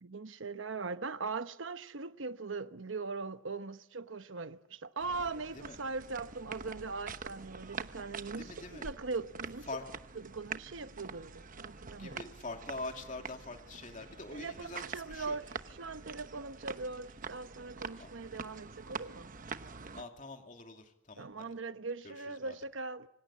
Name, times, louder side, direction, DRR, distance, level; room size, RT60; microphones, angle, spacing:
voice 1, 0.0-9.7 10.1-12.2 14.3-15.5 15.8-19.3 21.2-23.1, right 4 dB, 80° right, 1.0 m, -40 dB
sound 1, 5.0-20.0, right 5 dB, 45° right, 1.1 m, -46 dB
voice 2, 8.4-8.9 9.7-9.8 11.9-15.4 18.0-18.1 19.9-21.5 22.0-22.6, left 3 dB, 45° left, 2.5 m, -44 dB
26.5 x 25.5 x 8.6 m
head